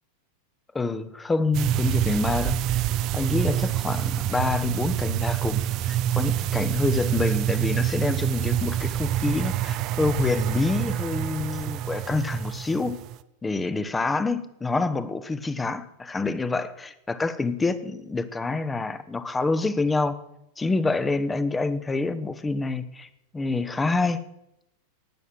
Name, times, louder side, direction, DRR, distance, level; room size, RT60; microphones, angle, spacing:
voice 1, 0.7-2.8 3.1-13.0 13.4-20.2 20.6-24.2, left 3 dB, 10° left, 13 dB, 0.9 m, -27 dB
sound 1, 1.5-13.2, right 12 dB, 40° right, 0.6 m, -27 dB
12.0 x 9.7 x 7.7 m, 0.85 s
figure-of-eight pair, 90°, 0 cm